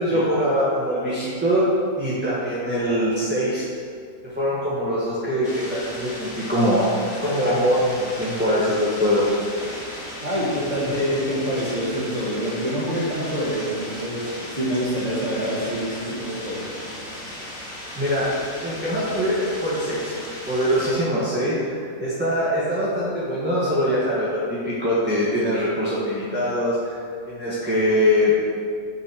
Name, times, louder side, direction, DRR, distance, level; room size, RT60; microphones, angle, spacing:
voice 1, 0.0-1.6 2.0-3.7 4.2-9.2 10.8-10.9 18.0-18.3 18.6-20.1 20.4-24.4 24.6-27.0 27.3-28.3, equal, 10° right, -10 dB, 1.3 m, -23 dB
sound 1, 5.4-20.9, left 1 dB, 45° left, 2.0 m, -36 dB
voice 2, 10.2-16.7, equal, 30° right, -7 dB, 1.8 m, -26 dB
9.6 x 4.2 x 4.4 m, 2.2 s
omnidirectional pair, 1.5 m